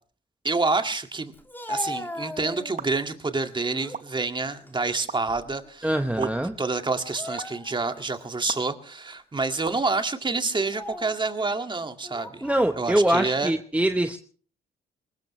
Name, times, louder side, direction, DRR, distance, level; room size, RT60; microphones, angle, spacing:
voice 1, 0.4-1.3 1.7-5.9 6.2-6.3 6.6-12.5 12.7-13.5, right 3 dB, 25° right, 7 dB, 2.0 m, -28 dB
Speech, 1.3-3.0 3.5-4.1 4.5-5.7 6.0-6.2 7.0-8.0 8.5-8.7 9.4-9.7 10.5-11.2 12.0-12.7, left 1 dB, 10° left, 2.6 m, -38 dB
sound 1, 2.8-2.9 3.9-4.0 5.1-5.2 6.2-6.3 7.4-7.5 8.5-8.6 9.6-9.8, right 7 dB, 40° right, 1.1 m, -34 dB
voice 2, 5.8-6.5 12.4-14.2, right 1 dB, 5° right, 6 dB, 1.0 m, -23 dB
23.0 x 20.0 x 3.2 m, 0.44 s
cardioid pair, 90°, 20 cm